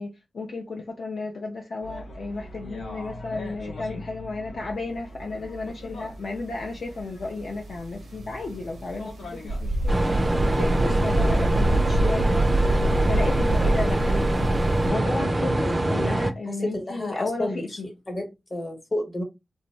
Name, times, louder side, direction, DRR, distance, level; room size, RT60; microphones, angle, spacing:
voice 1, 0.0-10.0 10.4-12.5 13.1-17.9, left 3 dB, 60° left, 0.4 m, -33 dB
sound 1, 1.8-15.5, left 1 dB, 80° left, 0.8 m, -41 dB
sound 2, 9.5-14.9, right 1 dB, 80° right, 0.5 m, -24 dB
sound 3, 9.9-16.3, right 1 dB, 25° right, 0.3 m, -24 dB
voice 2, 10.8-11.5 15.7-16.0 16.5-17.8 18.1-19.2, left 1 dB, 35° left, 0.9 m, -32 dB
2.5 x 2.0 x 3.1 m
wide cardioid pair, 105°, 0 cm